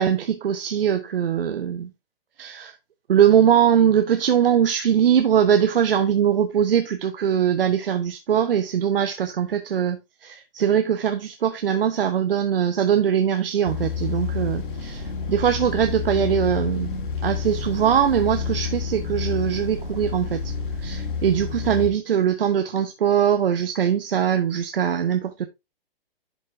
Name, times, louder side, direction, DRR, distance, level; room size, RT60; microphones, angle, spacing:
voice 1, 0.0-1.9 2.4-2.7 3.1-16.9 17.2-20.5 20.8-25.5, right 9 dB, 65° right, 0.9 m, -21 dB
sound 1, 13.7-21.9, left 5 dB, 55° left, 1.7 m, -29 dB
11.0 x 4.2 x 3.3 m
figure-of-eight pair, 115°, 30 cm